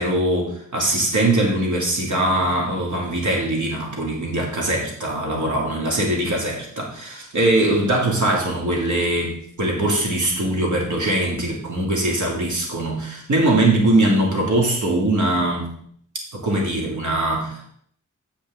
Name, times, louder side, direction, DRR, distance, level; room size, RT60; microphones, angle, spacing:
voice 1, 0.0-15.7 16.3-17.7, right 1 dB, 65° right, -2 dB, 2.4 m, -21 dB
8.5 x 8.1 x 3.7 m, 0.63 s
wide cardioid pair, 115°, 32 cm